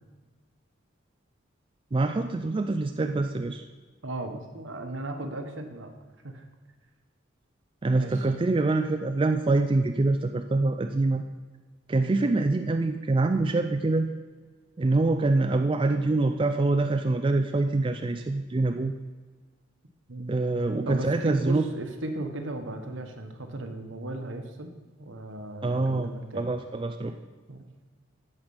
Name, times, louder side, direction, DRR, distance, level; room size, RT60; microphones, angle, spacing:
voice 1, 1.9-3.6 7.8-11.2 11.9-14.1 14.8-18.9 20.3-21.6 25.6-27.2, right 2 dB, 25° right, 6 dB, 0.4 m, -25 dB
voice 2, 4.0-5.9 6.2-6.4 7.9-8.3 20.1-24.7 25.0-26.5 27.5-27.7, right 2 dB, 75° right, 5 dB, 1.2 m, -36 dB
15.0 x 5.1 x 5.6 m, 1.4 s
head